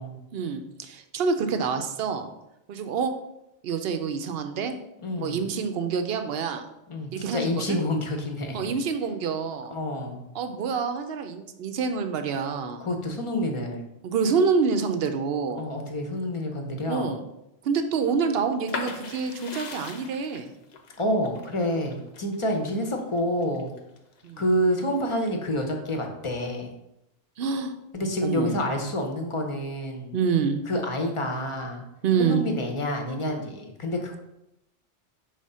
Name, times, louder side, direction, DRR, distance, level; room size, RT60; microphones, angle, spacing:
voice 1, 0.3-2.3 2.7-3.1 3.6-4.7 5.2-6.7 7.1-7.8 8.5-9.7 10.3-12.8 14.0-15.6 16.9-17.2 17.6-20.5 24.2-24.4 27.4-27.7 28.2-28.6 30.1-30.6 32.0-32.4, right 5 dB, 60° right, 7 dB, 0.8 m, -27 dB
voice 2, 5.0-5.4 6.9-8.6 9.7-10.2 12.8-13.8 15.5-17.1 21.0-23.7 24.4-26.7 27.9-30.2 30.7-31.8 32.2-34.2, equal, 30° left, 3 dB, 0.8 m, -28 dB
sound 1, 18.7-24.3 24.8-25.6, left 4 dB, 60° left, 1.0 m, -39 dB
5.0 x 3.7 x 5.5 m, 0.87 s
omnidirectional pair, 1.2 m